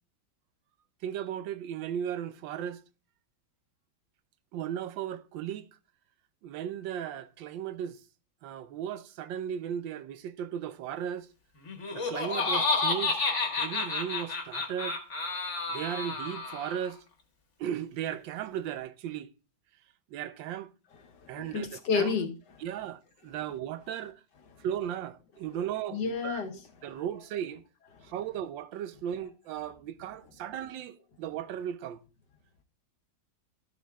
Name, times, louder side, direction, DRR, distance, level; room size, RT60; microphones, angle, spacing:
voice 1, 1.0-2.8 4.5-5.7 6.4-8.0 8.4-11.3 11.9-13.3 13.5-15.0 15.7-17.0 17.6-19.3 20.1-20.7 21.3-22.2 22.6-24.2 24.6-26.5 26.8-27.6 28.0-32.0, right 10 dB, 85° right, 1.4 m, -36 dB
Laughter, 11.7-16.9, left 4 dB, 45° left, 1.5 m, -30 dB
voice 2, 21.1-22.6 25.9-26.9 28.0-28.1, left 5 dB, 70° left, 1.6 m, -32 dB
13.0 x 7.2 x 2.3 m
omnidirectional pair, 2.0 m